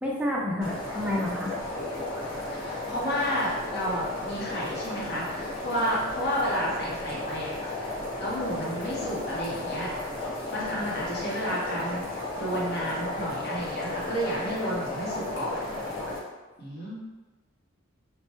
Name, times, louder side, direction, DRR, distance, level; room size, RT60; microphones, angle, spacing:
voice 1, 0.0-1.5, left 1 dB, 5° right, -4 dB, 0.4 m, -29 dB
sound 1, 0.6-16.2, left 2 dB, 75° left, 1.1 m, -34 dB
voice 2, 2.5-7.9 8.2-9.9 10.5-12.1 12.4-15.8 16.6-17.0, equal, 55° left, -6 dB, 0.9 m, -31 dB
3.1 x 2.1 x 3.0 m, 1.2 s
head